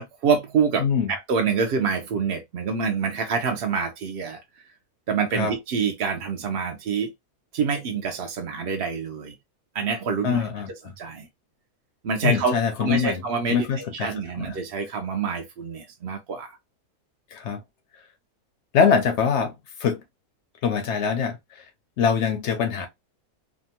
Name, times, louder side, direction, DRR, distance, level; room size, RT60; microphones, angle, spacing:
voice 1, 0.0-4.4 5.1-7.1 7.5-9.3 9.7-10.4 11.0-11.3 12.0-16.6, right 5 dB, 75° right, 0.5 m, -26 dB
voice 2, 0.8-1.1 5.3-5.5 10.2-10.9 12.2-13.2 13.5-14.5 17.3-17.6 18.7-19.5 19.8-20.0 20.6-21.4 22.0-22.9, left 6 dB, 65° left, 0.7 m, -23 dB
2.8 x 2.2 x 2.7 m
omnidirectional pair, 1.6 m